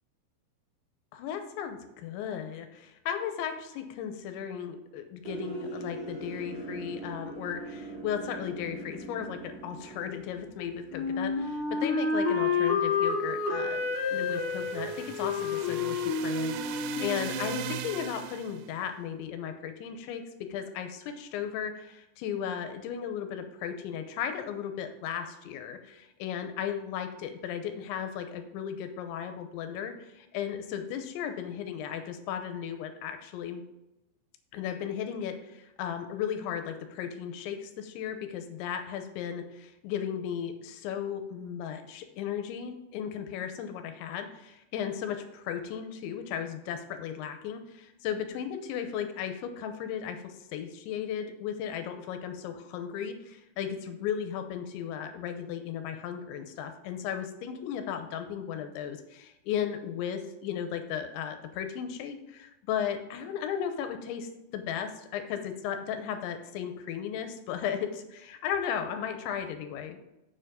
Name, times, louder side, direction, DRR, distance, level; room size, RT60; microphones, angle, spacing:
voice 1, 1.1-20.2 20.5-33.6 34.5-70.0, left 8 dB, 85° left, 7 dB, 2.8 m, -35 dB
sound 1, 5.2-11.8, right 2 dB, 65° right, 1.4 m, -42 dB
Wind instrument woodwind instrument, 10.9-17.7, left 4 dB, 55° left, 2.4 m, -29 dB
sound 2, 13.7-18.7, right 10 dB, 85° right, 3.1 m, -40 dB
7.1 x 6.8 x 5.0 m, 0.98 s
omnidirectional pair, 5.7 m